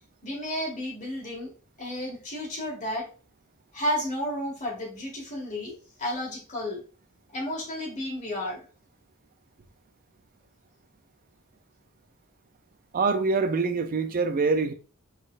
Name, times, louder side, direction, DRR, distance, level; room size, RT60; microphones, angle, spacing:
voice 1, 0.2-1.5 1.8-3.1 3.7-6.8 7.3-8.7, left 1 dB, 35° left, 1.8 m, -32 dB
voice 2, 12.9-14.7, right 4 dB, 40° right, 0.4 m, -24 dB
4.2 x 4.1 x 2.4 m
head